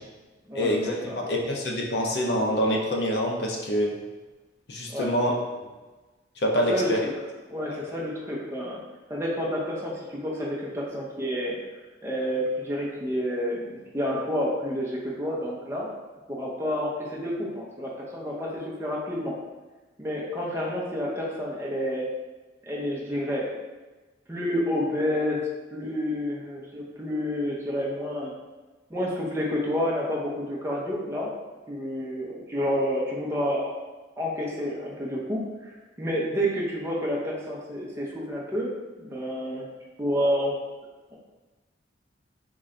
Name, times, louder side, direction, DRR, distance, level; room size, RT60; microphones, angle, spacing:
voice 1, 0.5-3.9 4.7-5.3 6.4-7.0, equal, 60° left, 0 dB, 0.6 m, -26 dB
voice 2, 7.5-8.8 9.1-11.6 12.0-15.9 16.3-19.4 20.0-22.1 22.6-23.6 24.3-28.3 28.9-31.3 31.7-33.8 34.2-38.7 39.0-39.7 40.0-40.5, equal, 15° right, -4 dB, 0.6 m, -29 dB
3.7 x 2.5 x 3.2 m, 1.2 s
head